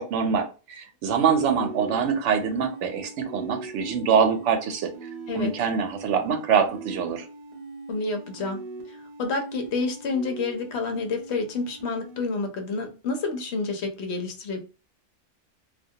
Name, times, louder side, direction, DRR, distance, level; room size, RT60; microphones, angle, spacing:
voice 1, 0.0-4.9 5.3-7.3, right 6 dB, 80° right, 6 dB, 0.9 m, -24 dB
sound 1, 1.1-12.2, right 3 dB, 50° right, 0.5 m, -41 dB
voice 2, 7.9-8.6 8.9-14.6, left 3 dB, 70° left, 4 dB, 0.8 m, -29 dB
2.2 x 2.2 x 2.7 m, 0.33 s
omnidirectional pair, 1.2 m